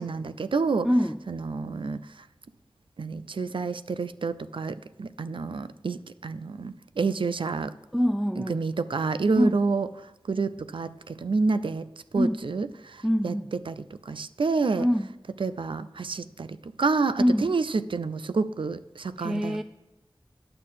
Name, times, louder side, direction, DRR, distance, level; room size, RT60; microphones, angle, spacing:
voice 1, 0.0-0.9 1.3-2.0 3.0-7.7 8.4-9.9 10.3-11.9 12.1-13.3 13.7-14.9 15.4-19.6, right 4 dB, 70° right, 13 dB, 0.4 m, -28 dB
voice 2, 0.8-1.2 7.9-8.6 9.3-9.6 12.2-12.4 13.0-13.5 14.7-15.1 17.2-17.5 19.2-19.6, equal, 5° right, 8 dB, 0.3 m, -24 dB
10.0 x 6.5 x 5.7 m, 1.1 s
wide cardioid pair, 60°, 9 cm